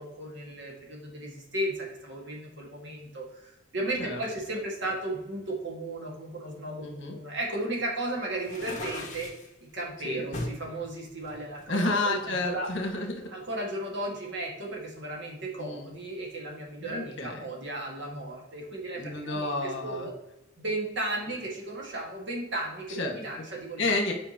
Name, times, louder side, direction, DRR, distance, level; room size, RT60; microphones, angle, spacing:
voice 1, 0.0-9.3 9.6-12.7 13.3-20.1 20.6-23.9, right 1 dB, 60° right, -1 dB, 1.8 m, -35 dB
voice 2, 6.8-7.2 10.0-10.2 11.7-13.2 15.6-15.9 16.8-17.4 18.9-20.1 22.9-23.5 23.8-24.1, left 2 dB, 65° left, 2 dB, 1.3 m, -30 dB
sound 1, 8.4-9.5 10.3-10.6 11.2-12.3, left 2 dB, 40° left, 1.3 m, -37 dB
8.0 x 5.0 x 2.9 m, 0.91 s
head